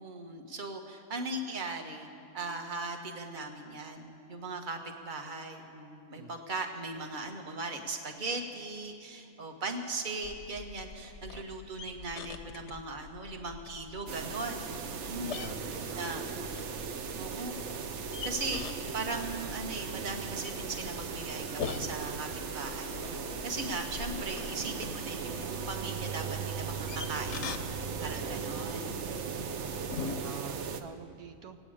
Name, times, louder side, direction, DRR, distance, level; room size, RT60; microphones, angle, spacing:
voice 1, 0.0-15.5 16.0-16.2 17.2-17.8 18.2-27.6 28.0-28.9, right 3 dB, 35° right, 4 dB, 1.2 m, -39 dB
sound 1, 10.2-30.2, left 5 dB, 60° left, 0.9 m, -44 dB
sound 2, 14.1-30.8, right 6 dB, 60° right, 0.9 m, -38 dB
voice 2, 15.2-16.4 28.0-28.5 30.2-31.6, right 7 dB, 80° right, 8 dB, 1.1 m, -47 dB
17.5 x 8.6 x 8.6 m, 2.7 s
omnidirectional pair, 1.6 m